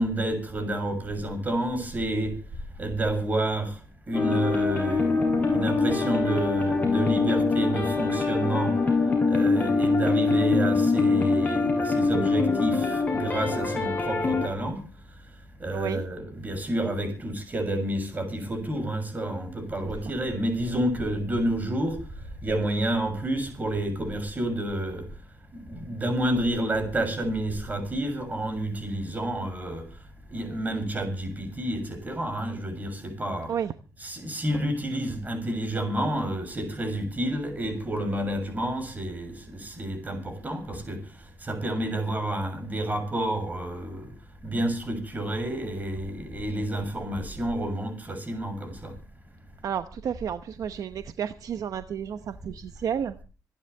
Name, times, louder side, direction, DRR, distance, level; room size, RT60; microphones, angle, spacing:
voice 1, 0.0-2.3 2.8-3.8 4.1-8.8 9.3-14.8 15.6-22.0 22.4-25.0 25.5-29.9 30.3-33.5 34.0-41.0 41.4-44.1 44.4-49.0, right 1 dB, 25° right, 7.2 m, -29 dB
sound 1, 4.1-14.5, left 4 dB, 25° left, 5.6 m, -24 dB
voice 2, 15.7-16.1 33.5-33.7 49.6-53.1, right 8 dB, 60° right, 0.9 m, -31 dB
26.5 x 10.5 x 3.4 m
cardioid pair, 130°, 7 cm